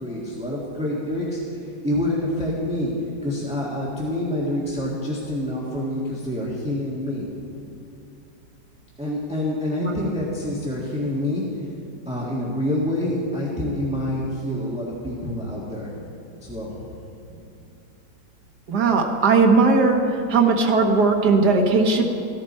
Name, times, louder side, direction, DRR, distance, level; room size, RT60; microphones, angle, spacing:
voice 1, 0.0-2.9 3.2-7.3 9.0-11.5 12.0-15.9 16.4-16.9, left 1 dB, 5° right, -6 dB, 1.4 m, -27 dB
voice 2, 18.7-20.0 20.3-22.0, right 4 dB, 65° right, 3 dB, 1.6 m, -18 dB
15.5 x 11.0 x 4.3 m, 2.7 s
omnidirectional pair, 2.0 m